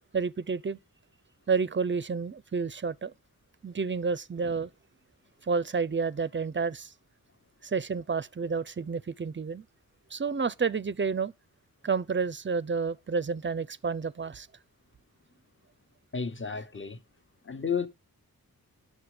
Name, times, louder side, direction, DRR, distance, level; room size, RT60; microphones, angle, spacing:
voice 1, 0.1-0.8 1.5-3.1 3.6-4.7 5.4-6.9 7.6-9.6 10.1-11.3 11.8-14.5, right 5 dB, 30° right, 0.5 m, -30 dB
voice 2, 16.1-17.0 17.4-17.9, left 6 dB, 30° left, 1.1 m, -32 dB
9.6 x 6.5 x 4.9 m
cardioid pair, 60°, 37 cm